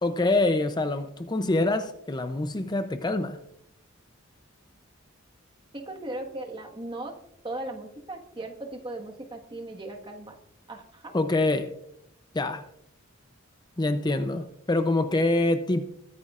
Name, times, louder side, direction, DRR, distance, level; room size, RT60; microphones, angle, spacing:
voice 1, 0.0-3.4 11.1-11.7 12.3-12.7 13.8-15.9, left 2 dB, 20° left, 0.6 m, -25 dB
voice 2, 5.7-7.2 7.4-10.4 10.7-11.1, right 2 dB, 25° right, 1.5 m, -37 dB
22.0 x 9.5 x 2.5 m
head